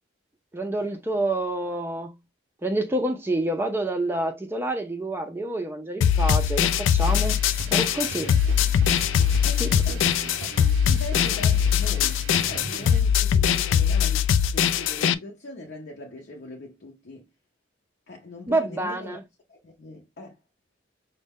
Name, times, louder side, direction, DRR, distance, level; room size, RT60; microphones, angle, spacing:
voice 1, 0.5-2.1 2.6-7.4 7.7-8.3 9.6-9.7 18.5-19.2, right 1 dB, 10° right, 0.4 m, -27 dB
sound 1, 6.0-15.1, left 8 dB, 90° left, 0.3 m, -22 dB
sound 2, 7.0-13.0, right 4 dB, 80° right, 0.5 m, -39 dB
voice 2, 9.4-10.6 10.9-17.3 18.1-19.2 19.5-20.4, left 2 dB, 55° left, 0.7 m, -41 dB
5.2 x 2.1 x 3.5 m
head